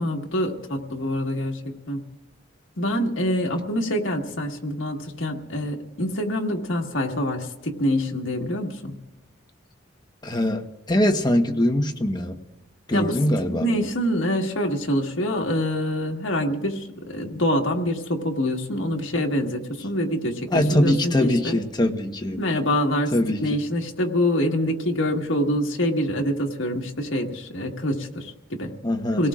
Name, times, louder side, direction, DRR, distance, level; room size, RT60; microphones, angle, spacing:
voice 1, 0.0-2.0 2.8-9.0 12.9-13.2 13.5-21.6 22.4-28.7 29.2-29.3, left 1 dB, 70° left, 1 dB, 1.7 m, -25 dB
voice 2, 10.2-12.4 12.9-13.7 20.5-22.4 23.1-23.5 28.8-29.3, left 1 dB, 20° left, 4 dB, 1.1 m, -22 dB
26.5 x 18.0 x 2.5 m, 1.0 s
head